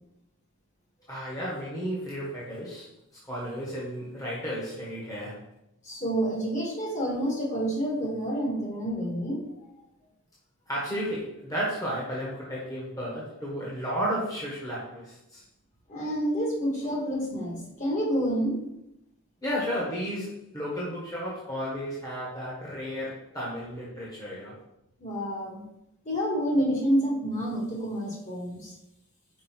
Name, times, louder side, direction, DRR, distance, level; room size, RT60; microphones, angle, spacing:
voice 1, 1.1-2.9 3.3-5.4 10.7-15.4 19.4-24.6, equal, 15° left, -6 dB, 1.4 m, -33 dB
voice 2, 5.8-9.4 15.9-18.6 25.0-25.6 26.1-28.7, equal, 35° left, -2 dB, 1.8 m, -28 dB
5.4 x 5.0 x 4.5 m, 0.83 s
head